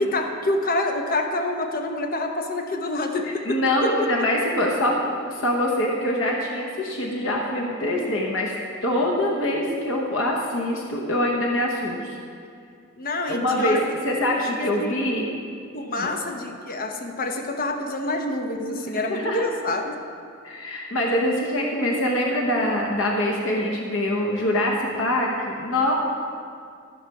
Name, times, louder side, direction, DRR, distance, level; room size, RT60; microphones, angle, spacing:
voice 1, 0.0-3.9 13.0-13.8 14.4-15.1 15.7-20.0, left 2 dB, 45° left, 4 dB, 0.9 m, -27 dB
voice 2, 3.5-4.9 5.3-8.5 8.8-12.2 13.3-13.8 14.0-15.3 16.0-16.1 18.7-19.4 20.4-25.9, left 1 dB, 70° left, -1 dB, 1.1 m, -24 dB
13.5 x 5.7 x 4.8 m, 2.3 s
head